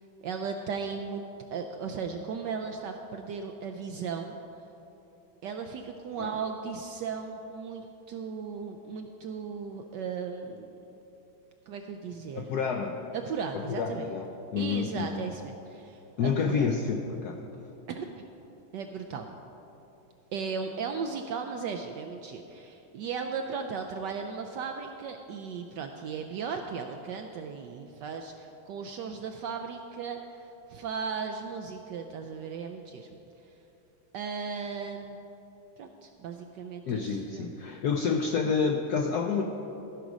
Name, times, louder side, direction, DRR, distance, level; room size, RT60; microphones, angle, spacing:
voice 1, 0.2-1.2 1.5-4.4 5.4-10.7 11.7-12.6 13.1-14.1 14.6-16.7 17.9-18.2 18.7-19.3 20.3-33.1 34.1-35.2 35.8-37.5, right 5 dB, 75° right, 5 dB, 1.0 m, -36 dB
voice 2, 12.3-13.0 13.5-15.3 16.2-17.4 36.9-39.4, left 5 dB, 80° left, 3 dB, 0.8 m, -29 dB
14.5 x 6.1 x 5.1 m, 3.0 s
omnidirectional pair, 2.3 m